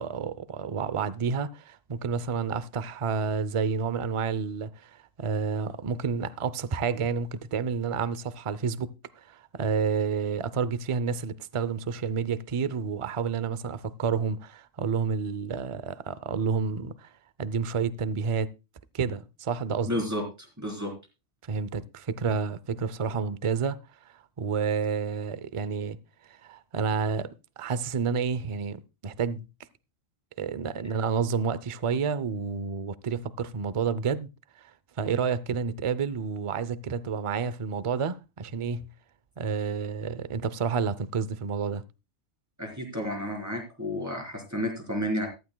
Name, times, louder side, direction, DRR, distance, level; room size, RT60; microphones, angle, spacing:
voice 1, 0.0-4.9 5.2-17.1 17.4-18.5 18.9-19.9 21.5-23.8 24.4-26.0 26.4-29.4 30.4-34.3 34.6-34.7 35.0-38.9 39.4-41.8, right 6 dB, 45° right, 0.4 m, -29 dB
voice 2, 19.9-20.9 42.6-45.3, equal, 10° right, 3.8 m, -31 dB
14.5 x 12.5 x 2.2 m
omnidirectional pair, 1.4 m